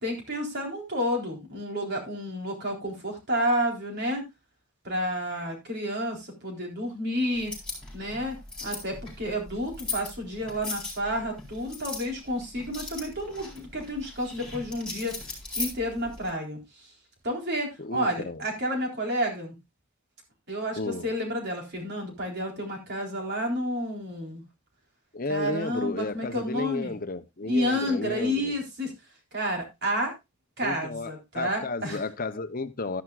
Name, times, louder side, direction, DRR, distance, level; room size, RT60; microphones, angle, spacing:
voice 1, 0.0-4.2 4.8-7.5 7.9-15.1 15.6-16.6 17.2-19.5 20.5-24.4 25.3-26.9 27.5-28.9 29.3-30.1 30.6-32.0, equal, 50° right, 3.9 m, -30 dB
sound 1, 7.3-16.3, left 3 dB, 5° left, 4.1 m, -39 dB
voice 2, 17.8-18.4 20.8-21.1 25.1-28.6 30.6-33.0, left 3 dB, 40° left, 0.8 m, -33 dB
12.5 x 10.5 x 2.4 m
head